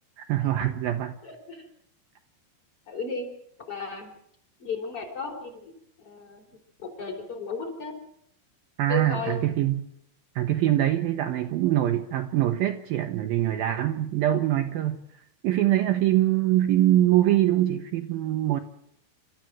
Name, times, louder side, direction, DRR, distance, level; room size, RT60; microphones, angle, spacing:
voice 1, 0.2-1.2 8.8-9.9 10.4-15.0 15.4-18.6, right 13 dB, 70° right, 5 dB, 2.5 m, -23 dB
voice 2, 1.2-1.7 2.9-3.3 3.7-4.1 4.6-5.7 6.0-6.5 6.8-8.0 8.9-9.4 15.8-16.0, left 3 dB, 30° left, 1 dB, 4.9 m, -34 dB
28.0 x 14.0 x 7.7 m, 0.71 s
omnidirectional pair, 4.9 m